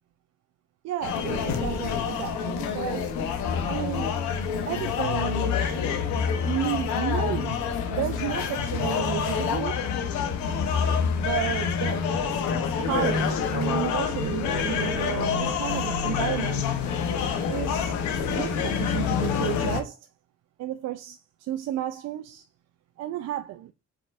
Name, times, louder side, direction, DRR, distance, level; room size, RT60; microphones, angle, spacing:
voice 1, 0.8-3.1 3.7-4.1 4.7-5.7 6.4-9.8 11.1-12.0 12.8-16.8 17.5-18.0 18.3-20.0 20.6-22.4 23.0-23.7, right 12 dB, 65° right, 0.4 m, -32 dB
sound 1, 1.0-19.8, left 6 dB, 80° left, 0.8 m, -27 dB
4.3 x 3.9 x 2.4 m
supercardioid pair, 60°, 29 cm